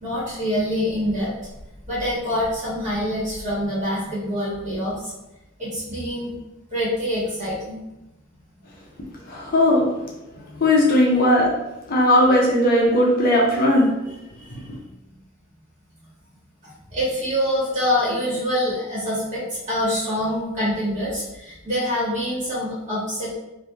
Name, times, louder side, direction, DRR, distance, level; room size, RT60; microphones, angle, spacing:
voice 1, 0.0-1.3 1.9-5.1 5.6-6.3 6.7-7.8 10.5-10.6 14.4-14.7 16.6-23.4, equal, 35° right, -9 dB, 1.4 m, -25 dB
voice 2, 9.3-9.9 10.6-11.5 11.9-13.9, left 1 dB, 40° left, -3 dB, 0.5 m, -17 dB
3.2 x 2.5 x 2.2 m, 0.96 s
head